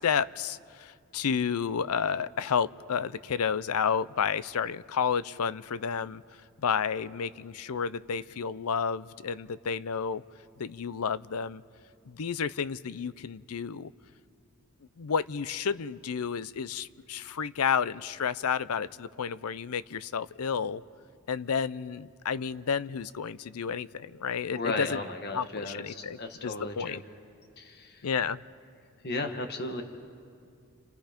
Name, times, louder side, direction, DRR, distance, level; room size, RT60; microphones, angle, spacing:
voice 1, 0.0-6.2 6.6-10.2 10.6-11.6 12.1-13.9 15.0-20.8 21.3-25.0 25.3-27.0 28.0-28.4, left 6 dB, 80° left, 17 dB, 0.5 m, -31 dB
voice 2, 24.5-27.0 27.6-28.0 29.0-29.8, left 2 dB, 45° left, 6 dB, 1.5 m, -35 dB
30.0 x 28.0 x 5.2 m, 2.3 s
head